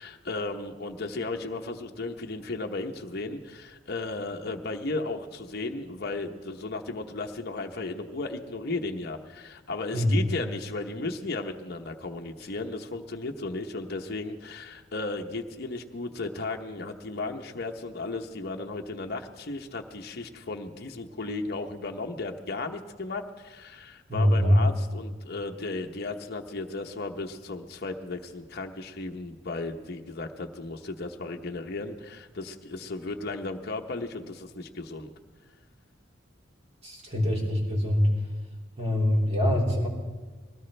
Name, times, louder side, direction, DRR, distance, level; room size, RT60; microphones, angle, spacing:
voice 1, 0.0-35.1, left 3 dB, 55° left, 3 dB, 1.0 m, -35 dB
voice 2, 24.1-24.6 36.8-38.1 38.8-39.9, equal, 35° right, -3 dB, 3.9 m, -23 dB
21.0 x 17.5 x 3.3 m, 1.4 s
head